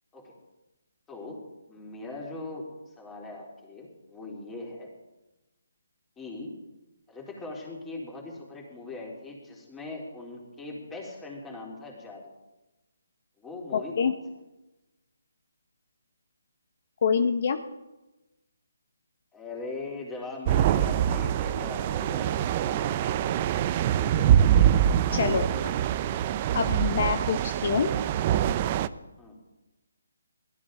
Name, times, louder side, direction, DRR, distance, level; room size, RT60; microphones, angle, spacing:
voice 1, 1.1-2.7 3.0-4.9 6.2-6.5 7.1-12.3 13.4-14.2 19.3-23.2 23.9-24.3 25.2-25.7 29.2-29.4, left 2 dB, 10° left, -2 dB, 3.4 m, -40 dB
voice 2, 13.7-14.1 17.0-17.6 25.1-25.4 26.5-27.9, left 6 dB, 50° left, 7 dB, 0.9 m, -25 dB
sound 1, 20.5-28.9, right 10 dB, 30° right, 0.5 m, -24 dB
20.0 x 13.0 x 3.9 m, 1.0 s
hypercardioid pair, 155°, 0 cm